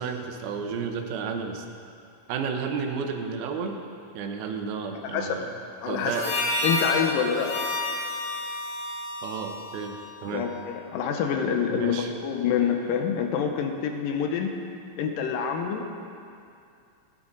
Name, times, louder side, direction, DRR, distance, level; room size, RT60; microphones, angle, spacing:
voice 1, 0.0-1.6 2.3-3.8 4.1-5.5 5.9-6.3 9.2-9.9 10.2-10.5 11.7-12.1, right 5 dB, 85° right, 4 dB, 2.8 m, -32 dB
voice 2, 5.8-6.3 6.6-7.6 10.3-14.6 15.0-15.9, left 7 dB, 80° left, 4 dB, 2.4 m, -27 dB
Harmonica, 6.0-10.6, left 2 dB, 45° left, 3.8 m, -31 dB
16.5 x 9.7 x 3.9 m, 2.5 s
omnidirectional pair, 4.2 m